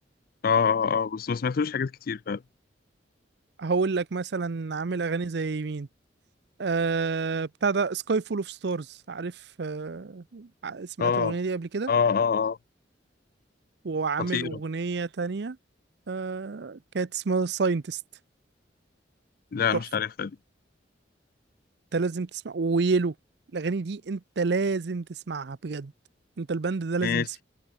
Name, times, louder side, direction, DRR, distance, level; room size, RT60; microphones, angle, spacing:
voice 1, 0.4-2.4 11.0-11.3 11.9-12.6 14.3-14.6 19.5-20.3 27.0-27.3, left 6 dB, 50° left, 0.4 m, -25 dB
voice 2, 3.6-5.9 6.6-11.9 13.8-15.6 16.1-18.0 19.7-19.8 21.9-23.1 23.5-25.9 26.4-27.4, right 4 dB, 60° right, 0.6 m, -29 dB
head